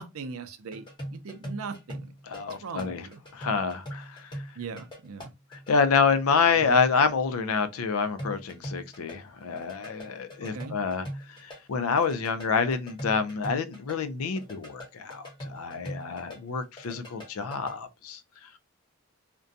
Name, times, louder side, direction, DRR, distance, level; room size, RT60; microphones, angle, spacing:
voice 1, 0.0-2.1 2.6-3.2 4.6-5.3 6.5-6.8 10.5-10.8, right 5 dB, 85° right, 0.5 m, -39 dB
sound 1, 0.7-5.7 8.2-11.6 11.8-16.4 16.6-17.8, equal, 20° left, 0.8 m, -41 dB
voice 2, 2.3-3.1 3.3-4.4 5.5-11.1 11.4-18.2, left 5 dB, 85° left, 0.5 m, -27 dB
2.5 x 2.2 x 2.5 m
head